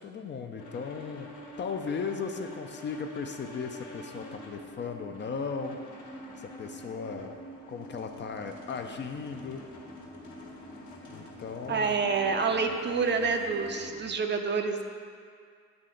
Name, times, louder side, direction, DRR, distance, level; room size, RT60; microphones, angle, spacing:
voice 1, 0.0-5.8 6.4-7.3 7.7-9.6 11.1-12.0, left 5 dB, 40° left, 5 dB, 0.4 m, -37 dB
sound 1, 0.6-14.0, left 1 dB, 80° left, 1.3 m, -46 dB
voice 2, 11.7-14.8, right 5 dB, 35° right, 5 dB, 0.5 m, -27 dB
9.1 x 3.3 x 3.8 m, 2.2 s
cardioid pair, 90°, 30 cm